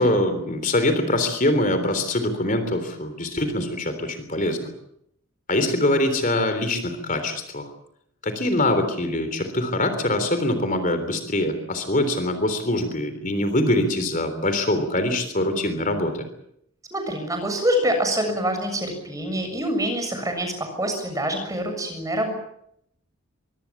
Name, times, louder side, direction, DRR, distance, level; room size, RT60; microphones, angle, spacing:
voice 1, 0.0-4.7 5.5-7.7 8.2-16.2, left 1 dB, 40° left, 8 dB, 3.5 m, -23 dB
voice 2, 16.9-22.3, equal, 15° right, 5 dB, 6.9 m, -25 dB
24.5 x 24.0 x 7.3 m, 0.75 s
head